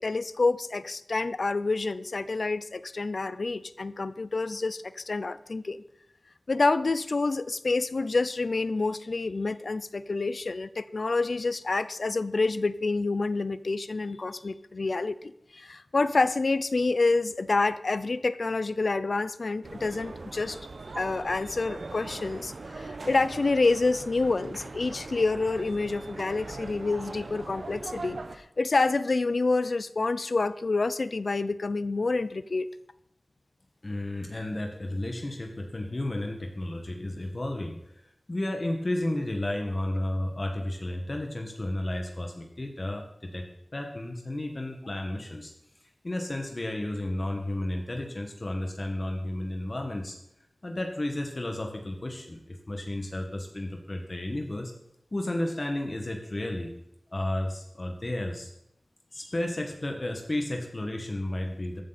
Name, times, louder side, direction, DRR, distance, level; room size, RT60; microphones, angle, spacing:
voice 1, 0.0-5.8 6.5-20.6 21.0-32.7, left 3 dB, 75° left, 15 dB, 0.6 m, -28 dB
sound 1, 19.6-28.4, right 3 dB, 90° right, 1.0 m, -41 dB
voice 2, 33.8-43.5 43.7-45.5 46.0-50.2 50.6-54.7 55.1-56.7 57.1-58.5 59.1-61.8, left 1 dB, 45° left, 2 dB, 1.8 m, -32 dB
14.0 x 12.5 x 4.3 m, 0.82 s
wide cardioid pair, 55°, 0 cm